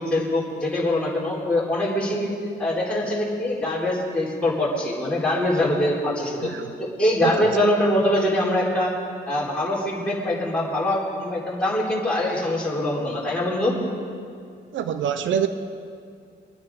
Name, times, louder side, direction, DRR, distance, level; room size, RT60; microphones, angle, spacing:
voice 1, 0.0-2.3 2.6-6.5 6.8-8.9 9.3-13.7, left 1 dB, 5° left, -8 dB, 4.3 m, -23 dB
voice 2, 14.7-15.5, right 8 dB, 75° right, 10 dB, 0.9 m, -24 dB
24.0 x 9.7 x 5.1 m, 2.3 s
cardioid pair, 90°, 20 cm